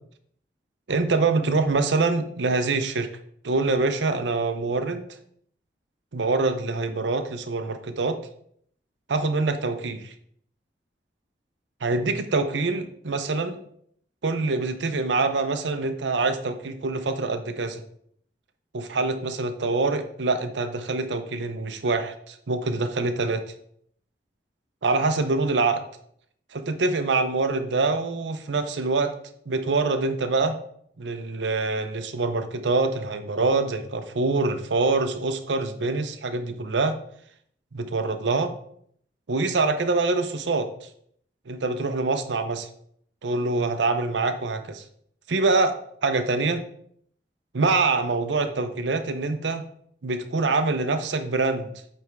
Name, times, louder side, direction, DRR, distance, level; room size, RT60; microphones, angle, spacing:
voice 1, 0.9-3.1 3.4-5.0 6.1-8.2 9.1-10.1 11.8-13.6 14.2-17.8 18.7-23.5 24.8-25.8 26.5-29.1 29.5-30.6 31.0-37.0 37.7-38.5 39.3-40.9 41.5-42.7 43.2-44.8 45.3-46.6 47.5-49.6 50.0-51.7, right 3 dB, 90° right, 8 dB, 0.7 m, -25 dB
8.2 x 3.5 x 4.6 m, 0.65 s
head